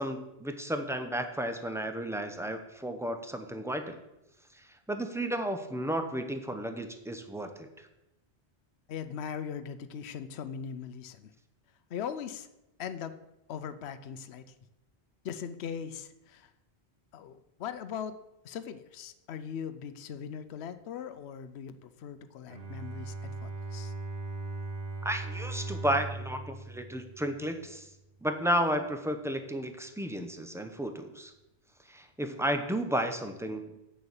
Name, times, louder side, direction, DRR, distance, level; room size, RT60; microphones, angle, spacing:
voice 1, 0.0-4.0 4.9-7.9 25.0-27.9 28.2-31.3 31.9-33.9, equal, 5° right, 6 dB, 0.7 m, -33 dB
voice 2, 8.9-11.3 11.9-12.5 12.8-13.1 13.5-14.5 15.2-16.5 17.1-18.2 18.4-23.9, left 7 dB, 75° left, 11 dB, 0.9 m, -40 dB
Bowed string instrument, 22.5-27.7, right 3 dB, 65° right, 1.4 m, -39 dB
8.2 x 6.7 x 7.1 m, 0.94 s
omnidirectional pair, 1.1 m